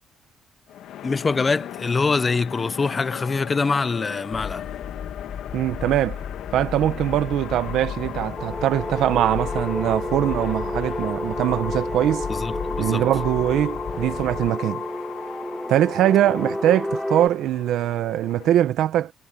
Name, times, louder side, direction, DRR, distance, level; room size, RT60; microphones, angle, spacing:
sound 1, 0.7-18.6, left 11 dB, 80° left, 1.8 m, -37 dB
voice 1, 1.0-4.7 12.3-13.0, left 4 dB, 25° left, 0.5 m, -24 dB
sound 2, 4.3-14.5, left 7 dB, 50° left, 4.2 m, -35 dB
voice 2, 5.5-6.2 6.5-12.3 12.8-14.8 15.7-19.1, right 12 dB, 80° right, 1.1 m, -22 dB
sound 3, 8.4-17.3, equal, ahead, 3.1 m, -30 dB
cardioid pair, 135°, 0 cm